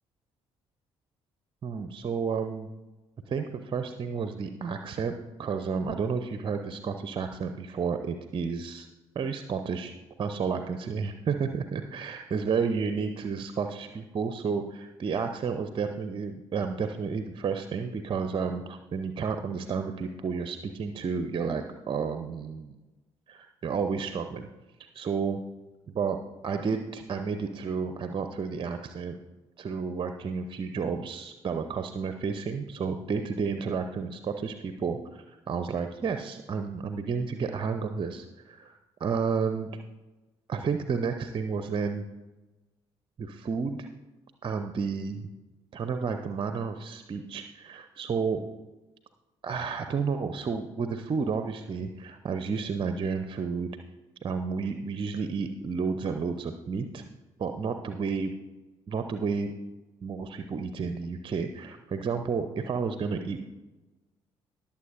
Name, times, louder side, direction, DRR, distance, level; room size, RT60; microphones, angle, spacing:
voice 1, 1.6-2.7 3.3-5.1 5.4-8.9 9.1-22.8 23.3-24.5 24.9-25.4 25.9-26.2 26.4-29.2 29.6-39.7 40.5-42.0 43.2-43.9 44.4-45.3 45.7-48.4 49.4-53.7 54.2-57.0 57.4-58.3 58.9-59.5 60.0-63.4, right 5 dB, 35° right, 8 dB, 0.7 m, -31 dB
20.5 x 7.1 x 2.6 m, 1.1 s
figure-of-eight pair, 45°, 14 cm